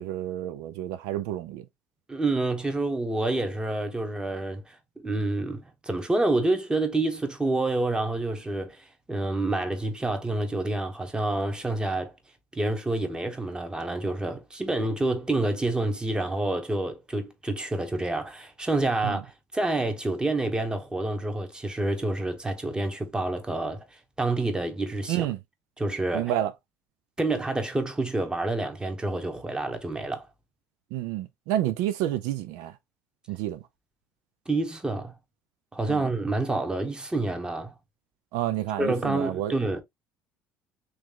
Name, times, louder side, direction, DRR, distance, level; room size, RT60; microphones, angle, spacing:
voice 1, 0.0-1.6 19.0-19.2 25.1-25.4 26.1-26.5 30.9-32.7 33.3-33.6 35.9-36.0 38.3-39.5, right 12 dB, 80° right, 0.4 m, -29 dB
voice 2, 2.1-12.1 12.5-25.3 25.8-26.3 27.2-30.3 34.5-35.2 35.7-37.7 38.8-39.8, right 2 dB, 15° right, 1.1 m, -28 dB
3.2 x 3.0 x 3.6 m
supercardioid pair, 80°, 6 cm